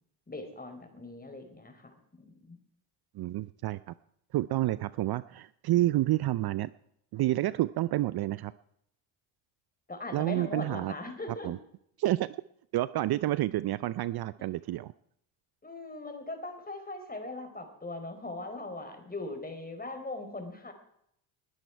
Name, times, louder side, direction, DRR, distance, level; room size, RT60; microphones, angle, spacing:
voice 1, 0.3-2.6 9.9-11.5 15.6-20.7, left 2 dB, 20° left, 6 dB, 4.3 m, -40 dB
voice 2, 3.1-3.9 4.3-6.7 7.1-8.5 10.1-10.9 11.3-11.6 12.0-12.3 12.7-14.9, right 15 dB, 55° right, 17 dB, 0.6 m, -29 dB
20.5 x 11.0 x 4.6 m, 0.71 s
supercardioid pair, 75°, 47 cm